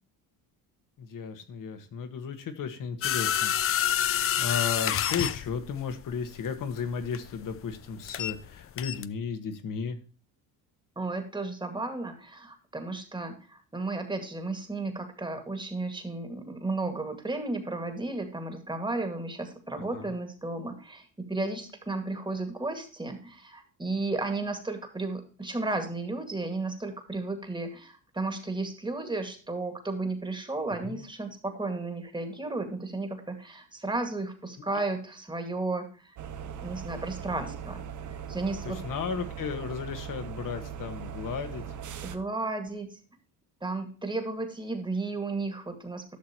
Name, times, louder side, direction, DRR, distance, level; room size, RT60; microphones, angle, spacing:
voice 1, 1.0-3.6 3.9-10.0 19.7-20.1 30.8-31.0 34.7-34.8 38.6-41.6, left 6 dB, 55° left, 8 dB, 1.6 m, -34 dB
sound 1, 3.0-8.5 8.8-9.1, left 10 dB, 35° left, 0.5 m, -28 dB
voice 2, 11.0-36.2 36.6-38.8 42.0-43.0 43.6-46.2, right 2 dB, 10° right, 6 dB, 2.0 m, -34 dB
sound 2, 36.2-42.2, right 8 dB, 50° right, 1.0 m, -39 dB
12.0 x 6.3 x 3.0 m, 0.39 s
cardioid pair, 95°, 39 cm